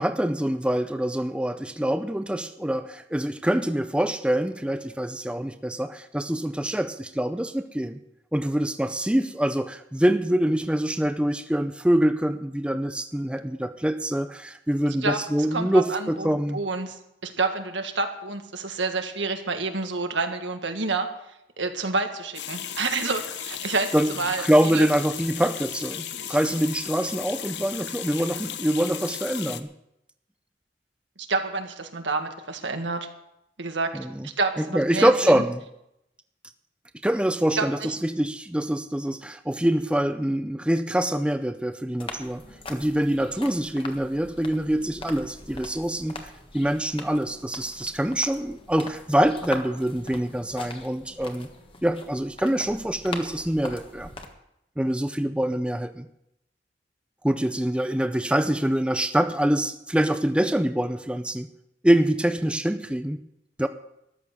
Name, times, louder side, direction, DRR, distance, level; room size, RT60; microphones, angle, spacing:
voice 1, 0.0-8.0 8.3-16.6 23.9-24.1 24.4-29.7 33.9-34.3 34.6-35.6 37.0-42.4 42.7-51.5 51.8-54.1 54.8-56.1 57.2-61.5 61.8-63.2 63.6-63.7, right 1 dB, 5° right, 9 dB, 0.5 m, -25 dB
voice 2, 15.5-17.0 17.2-21.1 21.6-24.9 31.3-33.1 33.6-33.9 34.2-35.4 37.6-37.9, right 3 dB, 85° right, 6 dB, 1.7 m, -28 dB
sound 1, 22.3-29.6, left 10 dB, 75° left, 0.8 m, -35 dB
sound 2, 42.0-54.3, left 2 dB, 30° left, 1.4 m, -42 dB
14.0 x 11.0 x 6.6 m, 0.82 s
head